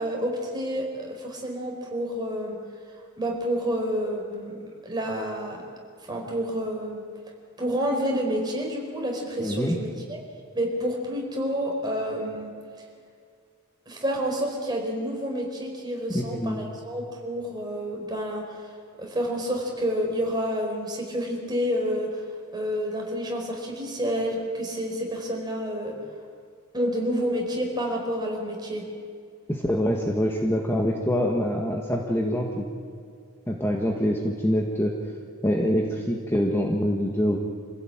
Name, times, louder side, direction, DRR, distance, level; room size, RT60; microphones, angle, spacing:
voice 1, 0.0-2.6 3.2-4.6 4.8-5.6 6.1-7.0 7.6-10.2 10.5-12.5 13.9-18.6 19.0-22.2 22.5-26.0 26.7-28.9, equal, 20° right, 0 dB, 4.6 m, -29 dB
voice 2, 9.4-9.8 16.1-16.7 29.5-32.7 33.5-34.9 35.4-37.4, equal, 10° left, 0 dB, 1.6 m, -25 dB
27.0 x 16.0 x 8.8 m, 2.2 s
head